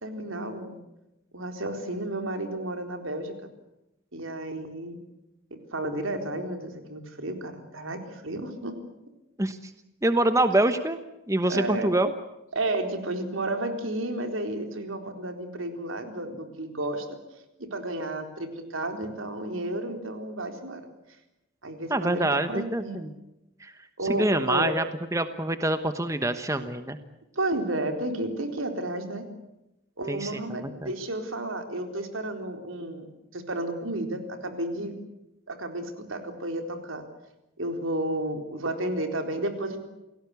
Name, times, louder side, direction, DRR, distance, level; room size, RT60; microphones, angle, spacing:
voice 1, 0.0-0.8 1.3-3.3 4.1-5.0 5.5-8.8 11.5-11.9 12.5-17.2 17.6-20.9 21.6-23.0 24.0-24.7 27.4-29.2 30.0-33.1 33.3-34.9 35.5-37.0 37.6-39.8, right 1 dB, 80° right, 6 dB, 4.0 m, -32 dB
voice 2, 9.4-9.7 10.0-11.0 11.3-12.1 21.9-23.1 23.6-23.7 24.1-24.8 25.1-27.0 30.1-30.9, right 1 dB, 15° right, 10 dB, 1.1 m, -25 dB
29.0 x 18.0 x 8.3 m, 0.92 s
head